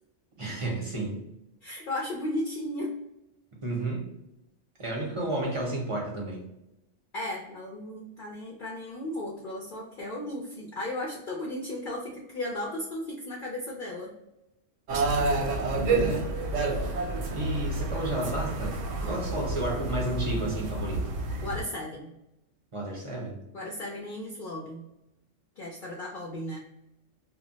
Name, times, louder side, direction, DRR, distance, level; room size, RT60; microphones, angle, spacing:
voice 1, 0.4-1.2 3.6-4.1 4.8-6.5 15.5-16.3 17.3-18.8 19.0-21.1 22.7-23.4, right 2 dB, 35° right, -2 dB, 0.6 m, -32 dB
voice 2, 1.6-3.0 7.1-14.1 19.0-19.2 21.4-22.1 23.5-24.8 25.6-26.6, left 1 dB, 60° left, -3 dB, 0.6 m, -35 dB
sound 1, 14.9-21.6, right 3 dB, 80° right, 0.9 m, -29 dB
2.2 x 2.0 x 3.8 m, 0.88 s
omnidirectional pair, 1.2 m